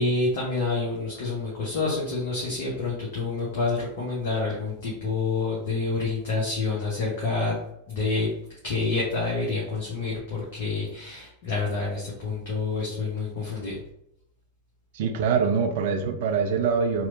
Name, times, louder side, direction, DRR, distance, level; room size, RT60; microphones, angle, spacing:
voice 1, 0.0-7.6 7.9-8.3 8.6-13.8, left 3 dB, 50° left, -4 dB, 0.7 m, -28 dB
voice 2, 14.9-17.1, right 6 dB, 50° right, 6 dB, 0.3 m, -24 dB
2.9 x 2.0 x 2.5 m, 0.76 s
figure-of-eight pair, 90°, 0 cm